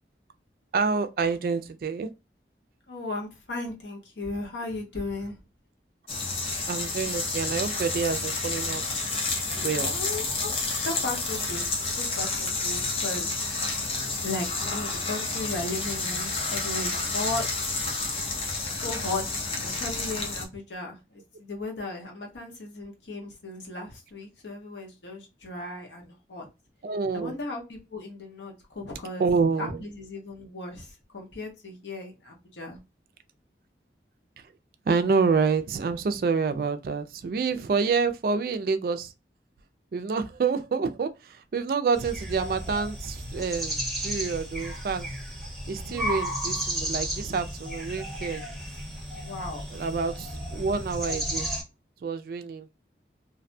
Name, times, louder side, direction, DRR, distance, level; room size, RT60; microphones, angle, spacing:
voice 1, 0.7-2.1 6.7-8.8 9.5-10.0 26.8-27.4 29.2-29.8 34.9-39.1 39.9-45.1 45.7-48.4 49.7-51.5 52.0-52.7, right 5 dB, 55° right, 0.3 m, -27 dB
voice 2, 2.9-5.3 9.9-13.3 14.2-17.9 18.7-26.5 27.1-29.3 29.6-32.8 45.8-46.1 49.2-49.6, left 2 dB, 85° left, 0.9 m, -36 dB
sound 1, 6.1-20.5, left 3 dB, 30° left, 0.5 m, -30 dB
sound 2, 41.9-51.6, right 1 dB, ahead, 0.9 m, -33 dB
2.5 x 2.1 x 2.6 m
head